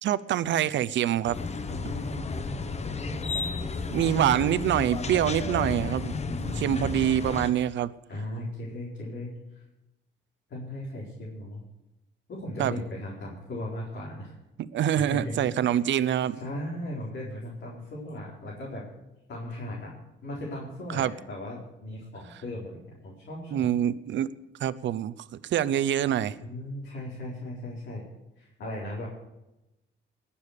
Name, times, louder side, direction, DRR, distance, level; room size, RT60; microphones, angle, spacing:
voice 1, 0.0-1.4 3.9-6.2 6.6-7.9 12.6-12.7 14.6-16.4 20.9-21.1 23.5-24.3 24.6-26.4, right 11 dB, 70° right, 16 dB, 0.7 m, -25 dB
sound 1, 1.2-7.5, left 4 dB, 35° left, 1.0 m, -33 dB
voice 2, 1.7-4.0 4.2-4.7 5.2-5.9 6.2-7.1 8.1-9.3 10.5-11.6 12.3-14.3 15.0-15.7 16.3-18.8 19.3-19.9 20.2-23.7 26.4-28.0 28.4-29.1, left 1 dB, 60° left, -5 dB, 4.6 m, -37 dB
21.0 x 7.1 x 6.7 m, 0.95 s
cardioid pair, 90°, 20 cm